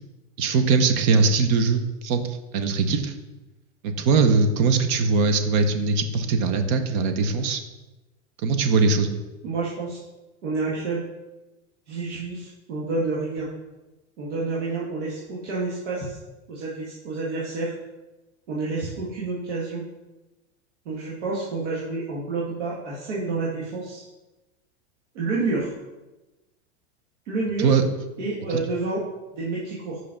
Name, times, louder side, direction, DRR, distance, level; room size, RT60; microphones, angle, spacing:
voice 1, 0.4-3.1 3.8-7.6 8.4-9.1 27.6-27.8 28.5-28.6, right 4 dB, 35° right, 7 dB, 0.7 m, -21 dB
voice 2, 9.4-10.0 10.4-11.0 11.9-13.5 14.2-16.2 16.5-17.7 18.5-19.8 20.9-24.0 25.1-25.7 27.3-27.7 28.2-29.0 29.3-30.0, right 3 dB, 75° right, -6 dB, 1.8 m, -29 dB
5.5 x 5.4 x 5.8 m, 1.1 s
supercardioid pair, 160°, 35 cm